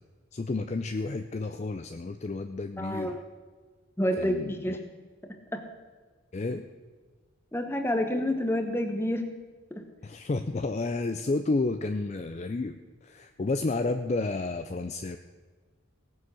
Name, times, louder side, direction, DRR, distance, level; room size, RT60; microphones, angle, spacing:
voice 1, 0.3-3.2 4.2-4.8 6.3-6.6 10.0-15.2, left 3 dB, 35° left, 8 dB, 0.4 m, -31 dB
voice 2, 2.8-3.2 4.0-4.8 5.2-5.6 7.5-9.3 9.7-9.8, left 1 dB, 10° left, 6 dB, 1.0 m, -29 dB
17.5 x 7.1 x 6.2 m, 1.4 s
head